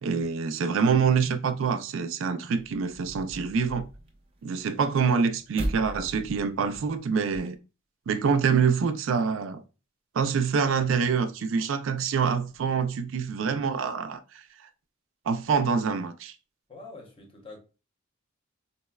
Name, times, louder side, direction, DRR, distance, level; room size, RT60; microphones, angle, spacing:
voice 1, 0.0-3.9 4.4-7.6 8.1-9.6 10.1-14.4 15.3-16.3, right 6 dB, 70° right, 0.3 m, -26 dB
sound 1, 2.6-7.6, right 1 dB, 25° right, 0.6 m, -39 dB
voice 2, 16.7-17.6, left 3 dB, 25° left, 0.8 m, -46 dB
4.0 x 2.1 x 2.2 m
head